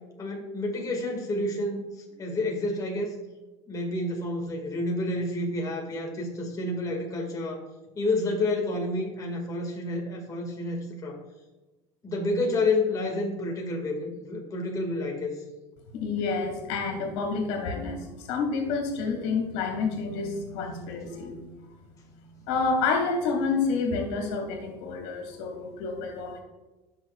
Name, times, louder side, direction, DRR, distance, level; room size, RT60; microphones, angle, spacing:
voice 1, 0.2-1.8 2.2-3.1 3.7-7.6 8.0-11.2 12.0-15.4, left 2 dB, 25° left, 0 dB, 2.0 m, -29 dB
voice 2, 15.9-21.5 22.5-26.4, left 4 dB, 90° left, 3 dB, 2.2 m, -29 dB
15.0 x 6.6 x 2.4 m, 1.1 s
cardioid pair, 140°, 14 cm